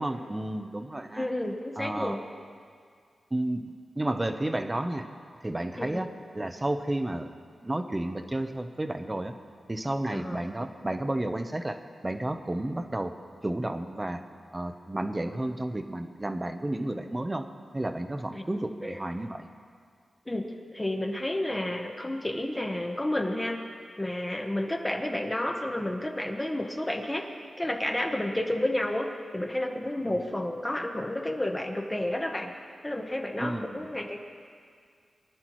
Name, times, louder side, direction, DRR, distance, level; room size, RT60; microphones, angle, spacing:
voice 1, 0.0-1.3 1.8-2.2 3.3-5.1 5.4-6.1 6.3-9.3 9.7-13.1 13.4-14.2 14.5-17.5 17.7-19.5 33.4-33.9, right 1 dB, 20° right, 8 dB, 0.7 m, -32 dB
voice 2, 1.1-2.2 5.8-6.0 10.1-10.4 18.3-18.4 18.8-19.0 20.3-20.4 20.7-23.6 24.0-27.3 27.6-29.1 29.3-32.5 32.8-34.2, left 1 dB, 15° left, 2 dB, 1.0 m, -31 dB
23.5 x 11.5 x 3.1 m, 2.1 s
wide cardioid pair, 100°, 0 cm